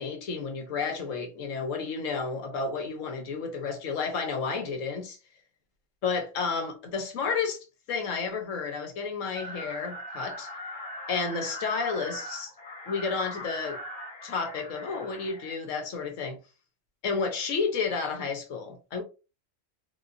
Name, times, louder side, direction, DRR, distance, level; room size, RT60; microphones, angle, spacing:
voice 1, 0.0-5.2 6.0-10.5 11.1-12.5 12.9-13.8 14.2-16.4 17.0-19.0, left 5 dB, 85° left, 1.3 m, -31 dB
sound 1, 9.3-15.5, left 1 dB, 50° left, 1.2 m, -40 dB
4.1 x 2.3 x 2.5 m
omnidirectional pair, 1.3 m